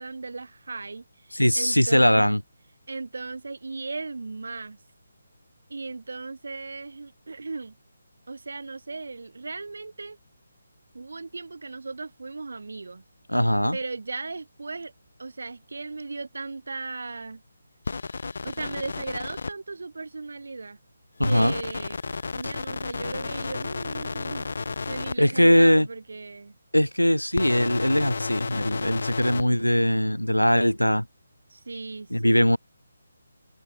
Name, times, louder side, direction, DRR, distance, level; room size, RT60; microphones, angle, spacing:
voice 1, 0.0-2.3 2.9-4.8 5.7-7.7 8.3-10.2 10.9-13.0 13.7-14.9 15.2-17.4 18.4-20.8 21.2-22.0 22.3-24.5 24.9-26.5 31.5-32.5, right 3 dB, 60° right, 5.1 m, -37 dB
voice 2, 1.3-2.4 13.3-13.8 21.2-21.5 22.4-22.5 25.2-25.9 26.7-31.0 32.1-32.6, equal, 90° left, 3.4 m, -21 dB
sound 1, 17.9-19.5 21.2-25.2 27.3-29.4, left 4 dB, 55° left, 5.2 m, -32 dB
figure-of-eight pair, 150°, 0 cm